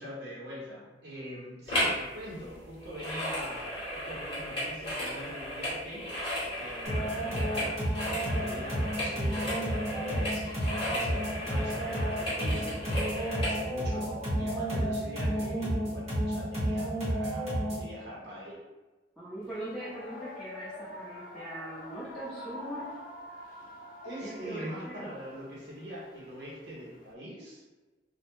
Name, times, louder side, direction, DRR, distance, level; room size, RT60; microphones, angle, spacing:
voice 1, 0.0-6.3 6.6-18.6 24.0-27.6, equal, 65° right, -6 dB, 0.7 m, -43 dB
sound 1, 1.7-2.0 2.3-13.6 14.1-14.2, equal, 30° left, 0.9 m, -35 dB
sound 2, 6.9-17.9, equal, 40° right, 1.0 m, -31 dB
voice 2, 19.2-22.9 24.2-25.2, right 1 dB, ahead, -11 dB, 0.6 m, -41 dB
sound 3, 19.4-27.1, left 1 dB, 50° left, 0.4 m, -46 dB
2.2 x 2.1 x 2.9 m, 1.2 s
head